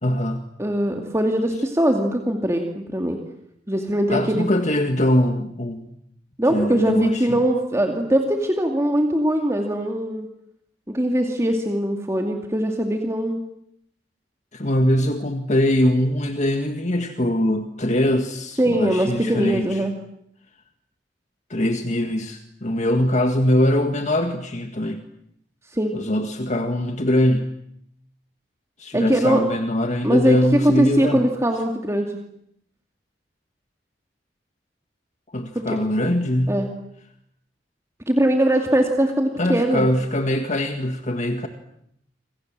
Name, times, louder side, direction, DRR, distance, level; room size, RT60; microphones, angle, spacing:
voice 1, 0.0-0.5 4.1-5.9 6.5-7.4 14.5-19.8 21.5-25.0 25.9-27.5 28.8-31.3 35.3-36.6 39.4-41.5, left 1 dB, 40° left, 6 dB, 1.9 m, -22 dB
voice 2, 0.6-3.2 3.7-4.5 6.4-10.3 10.9-13.4 18.6-19.9 25.7-26.0 28.9-29.4 30.0-32.1 35.5-35.8 36.5-36.7 38.1-39.9, right 1 dB, 15° right, 3 dB, 2.6 m, -21 dB
27.5 x 27.0 x 7.6 m, 0.74 s
head